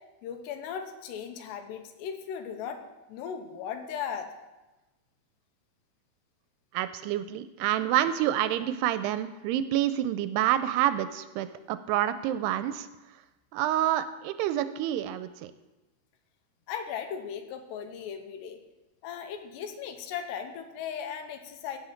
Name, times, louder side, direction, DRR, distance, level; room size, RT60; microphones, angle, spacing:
voice 1, 0.2-2.8 3.1-4.3 16.7-18.6 19.0-21.8, left 7 dB, 90° left, 6 dB, 3.1 m, -37 dB
voice 2, 6.7-12.9 13.5-15.5, right 12 dB, 85° right, 12 dB, 2.5 m, -28 dB
16.5 x 6.4 x 5.7 m, 1.1 s
omnidirectional pair, 4.8 m